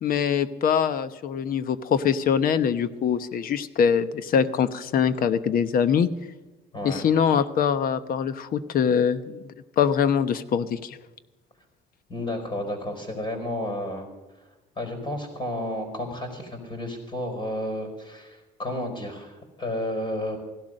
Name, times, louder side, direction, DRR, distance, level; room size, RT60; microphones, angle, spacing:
voice 1, 0.0-6.1 6.8-11.0, left 7 dB, 60° left, 13 dB, 1.0 m, -23 dB
voice 2, 6.7-7.1 12.1-14.1 14.8-20.4, left 1 dB, 30° left, 5 dB, 4.8 m, -32 dB
16.5 x 12.0 x 6.4 m, 1.1 s
cardioid pair, 110°, 17 cm